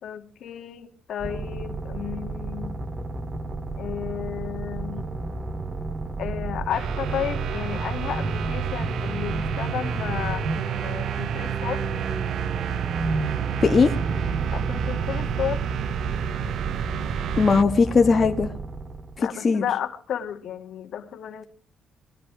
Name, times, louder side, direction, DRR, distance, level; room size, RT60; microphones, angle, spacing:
voice 1, 0.0-2.7 3.8-5.1 6.2-11.8 14.5-15.7 19.2-21.4, left 9 dB, 70° left, 6 dB, 2.4 m, -33 dB
sound 1, 1.2-19.3, right 2 dB, 30° right, 1.6 m, -32 dB
sound 2, 6.7-17.6, right 9 dB, 70° right, 0.7 m, -30 dB
voice 2, 13.6-13.9 17.4-18.5 19.2-19.6, left 4 dB, 40° left, 5 dB, 1.7 m, -19 dB
20.0 x 13.0 x 4.9 m, 0.42 s
cardioid pair, 90°, 0 cm